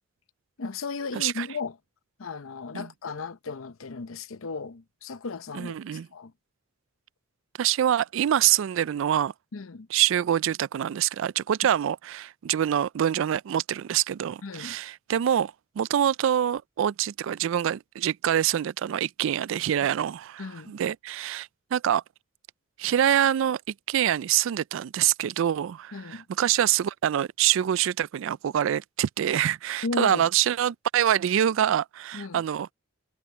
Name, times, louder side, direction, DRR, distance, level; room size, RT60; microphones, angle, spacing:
voice 1, 0.6-1.8 2.2-6.3 9.5-9.9 14.4-14.8 20.4-20.7 25.9-26.2 29.8-30.3 32.1-32.4, left 4 dB, 75° left, 0.7 m, -35 dB
voice 2, 1.1-1.5 2.7-2.9 5.5-6.1 7.6-9.3 9.9-22.0 22.8-23.6 23.9-32.7, right 10 dB, 65° right, 0.3 m, -25 dB
head